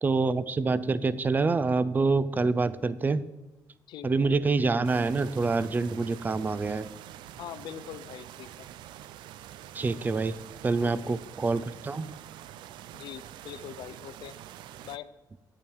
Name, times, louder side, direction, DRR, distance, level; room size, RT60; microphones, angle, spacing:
voice 1, 0.0-3.2 4.0-6.9 9.7-10.3 10.6-12.1, right 3 dB, 25° right, 17 dB, 0.4 m, -26 dB
voice 2, 3.9-4.4 7.4-8.7 10.8-11.1 12.9-14.4 14.8-15.1, left 10 dB, 80° left, 15 dB, 0.5 m, -43 dB
sound 1, 4.8-15.0, right 12 dB, 90° right, 0.4 m, -46 dB
8.8 x 8.6 x 4.7 m, 1.0 s
cardioid pair, 120°, 8 cm